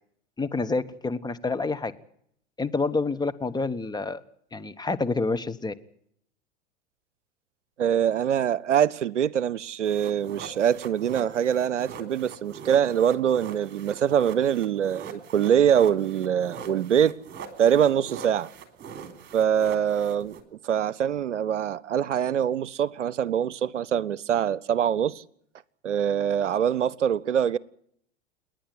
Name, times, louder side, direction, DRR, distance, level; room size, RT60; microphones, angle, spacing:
voice 1, 0.4-1.9 2.6-4.2 4.5-5.7, left 3 dB, 10° left, 1.2 m, -28 dB
voice 2, 7.8-17.1 17.6-18.5 19.3-20.4 20.6-25.2 25.8-27.6, right 9 dB, 75° right, 0.8 m, -24 dB
sound 1, 9.8-20.4, right 6 dB, 30° right, 3.6 m, -42 dB
29.0 x 10.5 x 9.5 m
figure-of-eight pair, 85°, 36 cm